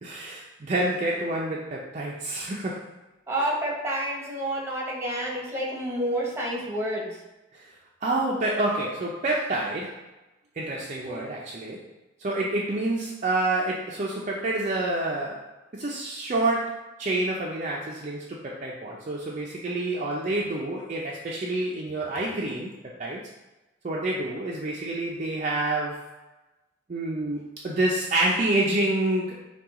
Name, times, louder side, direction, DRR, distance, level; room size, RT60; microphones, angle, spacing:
voice 1, 0.0-2.9 7.5-7.7 8.0-10.0 10.6-11.8 12.2-15.5 15.7-23.2 23.8-26.0 26.9-29.4, right 2 dB, 35° right, -3 dB, 0.5 m, -28 dB
voice 2, 3.3-7.2, right 1 dB, 15° right, -2 dB, 0.9 m, -29 dB
5.7 x 2.3 x 3.6 m, 1.1 s
head